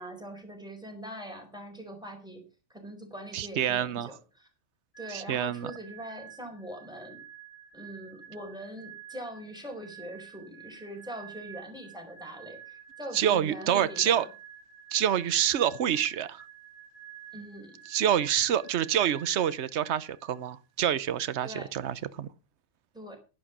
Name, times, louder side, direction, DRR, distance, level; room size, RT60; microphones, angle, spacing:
voice 1, 0.0-2.4 2.7-4.5 5.0-7.2 7.7-14.2 17.3-17.7 21.4-21.7 22.9-23.2, equal, 5° right, 4.6 m, -42 dB
voice 2, 3.3-4.1 5.1-5.7 13.1-14.3 14.9-16.5 17.9-22.3, right 10 dB, 70° right, 1.1 m, -27 dB
sound 1, 4.9-20.5, right 9 dB, 75° left, 8.2 m, -50 dB
11.5 x 11.0 x 6.0 m
omnidirectional pair, 1.2 m